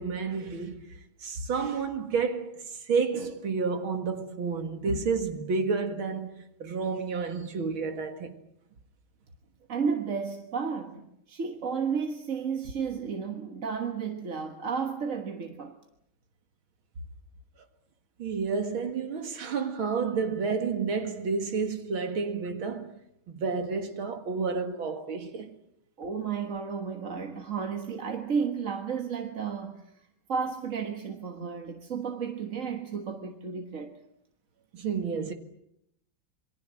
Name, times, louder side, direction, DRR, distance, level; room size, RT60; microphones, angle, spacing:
voice 1, 0.0-8.4 18.2-23.0 23.3-25.6 34.7-35.3, right 5 dB, 80° right, 2.7 m, -30 dB
voice 2, 9.7-15.7 26.0-29.8 30.3-33.9, right 6 dB, 40° right, 1.6 m, -32 dB
27.5 x 22.5 x 7.6 m
omnidirectional pair, 2.2 m